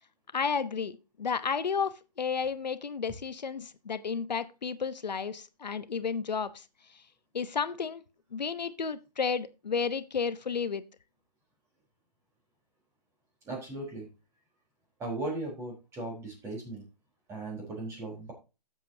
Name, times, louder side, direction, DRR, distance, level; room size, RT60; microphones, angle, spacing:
voice 1, 0.3-6.6 7.3-8.0 8.3-10.8, left 6 dB, 85° left, 12 dB, 0.9 m, -32 dB
voice 2, 13.4-14.1 15.0-16.8 17.3-18.3, right 2 dB, 15° right, -1 dB, 4.0 m, -37 dB
13.5 x 7.6 x 2.8 m, 0.30 s
hypercardioid pair, 150°, 21 cm